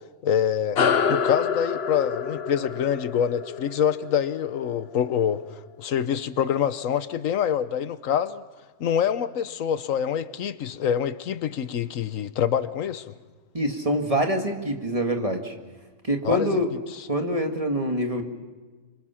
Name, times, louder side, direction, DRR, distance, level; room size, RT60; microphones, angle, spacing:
voice 1, 0.2-0.8 1.1-5.4 5.8-8.4 8.8-13.0 16.2-16.6, left 9 dB, 80° left, 14 dB, 1.3 m, -25 dB
sound 1, 0.7-5.6, left 6 dB, 55° left, 1.1 m, -27 dB
voice 2, 13.5-15.5 16.0-16.7 17.1-18.2, equal, 25° right, 4 dB, 2.0 m, -25 dB
26.5 x 24.5 x 5.8 m, 1.3 s
omnidirectional pair, 1.4 m